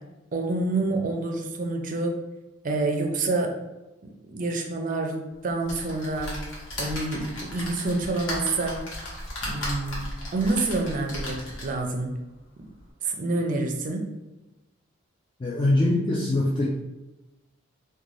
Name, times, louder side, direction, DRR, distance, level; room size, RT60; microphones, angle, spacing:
voice 1, 0.3-2.2 2.6-3.5 4.3-5.1 5.4-6.4 6.8-8.8 9.4-10.0 10.3-12.2 13.0-14.1, right 2 dB, 40° right, 3 dB, 0.4 m, -27 dB
sound 1, 5.6-11.9 12.4-12.5 12.8-12.9, left 1 dB, 65° left, 1.2 m, -35 dB
voice 2, 15.4-16.8, left 1 dB, 25° left, -4 dB, 0.3 m, -23 dB
3.6 x 2.3 x 3.2 m, 1.0 s
head